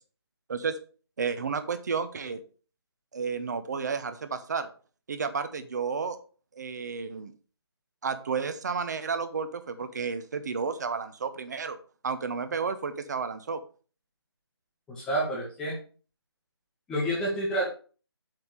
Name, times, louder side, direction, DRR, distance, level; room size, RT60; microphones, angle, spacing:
voice 1, 1.2-2.4 3.1-4.7 5.1-6.2 6.6-7.3 8.0-11.8 12.0-13.6, right 5 dB, 40° right, 10 dB, 0.9 m, -31 dB
voice 2, 14.9-15.8 16.9-17.7, right 1 dB, 5° left, -4 dB, 1.0 m, -29 dB
7.7 x 3.6 x 6.3 m, 0.38 s
figure-of-eight pair, 165°, 14 cm